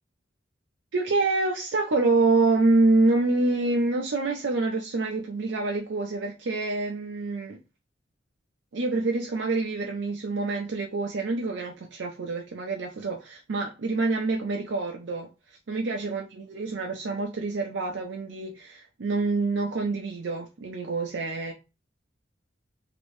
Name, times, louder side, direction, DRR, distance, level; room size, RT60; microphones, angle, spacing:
voice 1, 0.9-7.6 8.7-15.3 15.7-21.5, right 3 dB, 70° right, 0.5 m, -26 dB
2.9 x 2.6 x 3.1 m
head